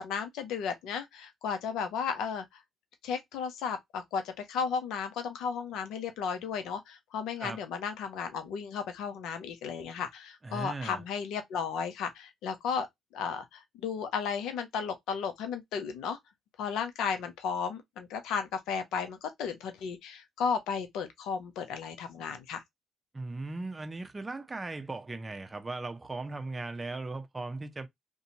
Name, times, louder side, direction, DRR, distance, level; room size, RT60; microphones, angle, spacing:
voice 1, 0.0-2.4 3.0-12.9 13.1-16.2 16.6-22.6, left 6 dB, 75° left, 0.6 m, -34 dB
voice 2, 10.4-11.0 23.1-27.9, right 3 dB, 25° right, 0.6 m, -38 dB
2.6 x 2.2 x 2.8 m
hypercardioid pair, 55°, 0 cm